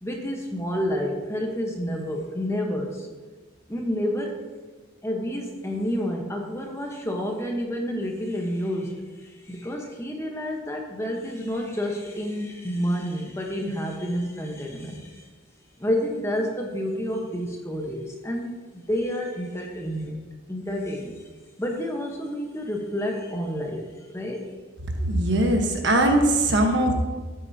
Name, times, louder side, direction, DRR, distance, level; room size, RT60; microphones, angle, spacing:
voice 1, 0.0-3.1 3.7-4.4 5.0-15.3 15.8-21.3 21.6-24.5, equal, 15° left, 1 dB, 1.1 m, -29 dB
voice 2, 25.0-26.9, right 1 dB, 60° right, 3 dB, 1.3 m, -21 dB
13.0 x 9.1 x 2.8 m, 1.3 s
head